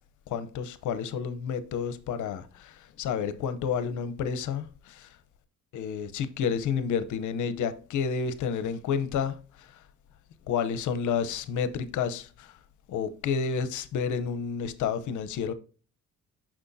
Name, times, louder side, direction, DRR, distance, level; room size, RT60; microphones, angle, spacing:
voice 1, 0.3-5.1 5.7-9.7 10.5-12.5 12.9-15.5, left 6 dB, 75° left, 0.8 m, -30 dB
6.1 x 6.0 x 2.6 m
cardioid pair, 90°, 30 cm